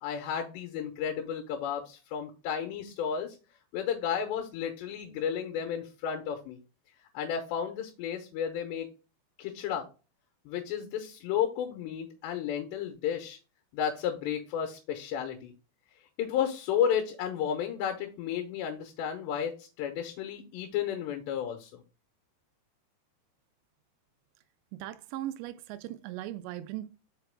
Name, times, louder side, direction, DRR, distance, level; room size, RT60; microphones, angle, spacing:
voice 1, 0.0-3.4 3.7-6.6 7.1-8.9 9.4-9.9 10.5-13.4 13.7-15.5 16.2-21.8, left 8 dB, 85° left, 3.1 m, -32 dB
voice 2, 24.8-26.9, right 13 dB, 85° right, 2.7 m, -38 dB
5.8 x 5.1 x 3.5 m
omnidirectional pair, 5.0 m